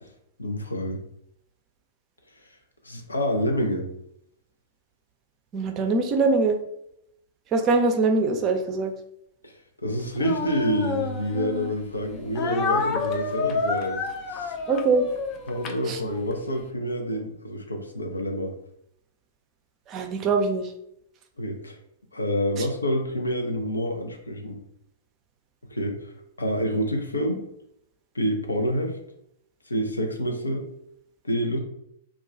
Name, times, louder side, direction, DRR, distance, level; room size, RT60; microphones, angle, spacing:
voice 1, 0.4-1.0 2.8-3.9 9.4-9.5 9.8-14.5 15.5-18.5 21.4-21.8 22.1-24.6 25.7-26.1 26.4-27.4 28.1-29.0 29.7-30.6 31.2-31.6, equal, 80° left, 3 dB, 0.5 m, -27 dB
voice 2, 5.5-6.6 7.5-8.9 14.7-15.0 15.9-16.0 19.9-20.6, right 3 dB, 30° right, 5 dB, 0.5 m, -22 dB
Speech, 10.1-11.7 12.3-16.4, left 4 dB, 30° left, 0.4 m, -29 dB
2.3 x 2.2 x 3.9 m, 0.76 s
figure-of-eight pair, 100°, 0 cm